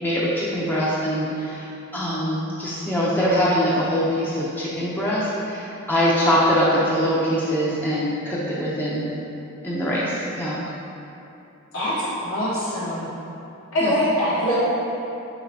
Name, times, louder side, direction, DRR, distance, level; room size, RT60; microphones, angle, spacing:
voice 1, 0.0-1.7 1.9-9.1 9.6-10.6 13.8-13.9, equal, 10° left, -7 dB, 0.5 m, -23 dB
voice 2, 11.7-13.1 13.7-14.6, equal, 70° left, -10 dB, 1.2 m, -23 dB
5.9 x 3.2 x 2.7 m, 2.9 s
head